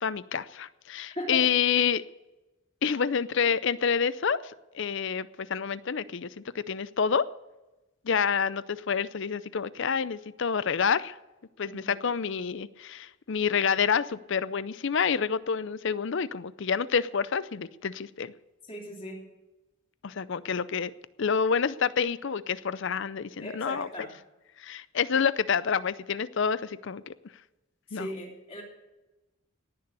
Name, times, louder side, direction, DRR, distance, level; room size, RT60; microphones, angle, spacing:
voice 1, 0.0-2.0 2.8-7.3 8.0-11.2 11.6-18.3 20.0-20.9 21.2-23.9 24.6-27.1 27.9-28.1, left 6 dB, 55° left, 17 dB, 0.5 m, -28 dB
voice 2, 11.7-12.0 18.7-19.2 23.4-24.1 27.9-28.6, equal, 25° left, 0 dB, 3.1 m, -38 dB
18.0 x 6.8 x 8.2 m, 1.1 s
head